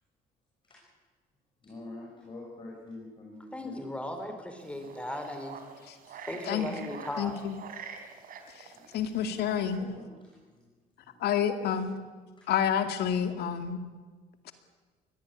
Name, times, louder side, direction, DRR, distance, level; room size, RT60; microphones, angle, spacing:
voice 1, 1.6-3.8 4.2-4.3 4.7-4.9 8.7-8.8 9.7-10.6 11.1-11.2 12.4-12.5, left 2 dB, 30° left, -3 dB, 6.5 m, -46 dB
voice 2, 3.5-5.6 6.3-7.3, left 1 dB, 5° left, 6 dB, 4.6 m, -37 dB
sound 1, 4.6-9.8, right 6 dB, 55° right, 3.6 m, -47 dB
voice 3, 7.2-7.5 8.9-9.9 11.2-11.9 12.5-13.8, left 8 dB, 75° left, 8 dB, 2.3 m, -28 dB
22.0 x 17.0 x 9.9 m, 1.4 s
cardioid pair, 110°, 17 cm